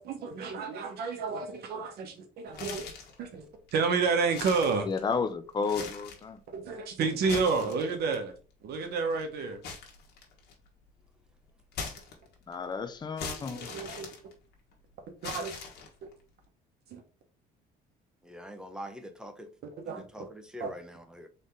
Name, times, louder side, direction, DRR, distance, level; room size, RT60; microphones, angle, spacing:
voice 1, 0.0-2.9 3.2-3.4 3.7-4.9 6.5-8.3 8.6-9.6 13.2-14.1 15.2-15.5 16.9-17.0 19.9-20.1 20.6-20.7, right 4 dB, 70° right, 1.2 m, -30 dB
sound 1, 2.5-3.2 3.7-3.8 4.2-5.2 5.6-6.3 7.1-8.1 9.6-10.7 11.7-12.5 13.2-14.7 15.2-16.1, left 5 dB, 75° left, 1.5 m, -41 dB
voice 2, 4.8-6.4 7.6-7.7 12.5-13.7, left 5 dB, 25° left, 0.6 m, -32 dB
voice 3, 18.2-19.5 19.9-21.3, equal, 5° right, 0.9 m, -44 dB
4.0 x 3.4 x 3.7 m
cardioid pair, 110°, 17 cm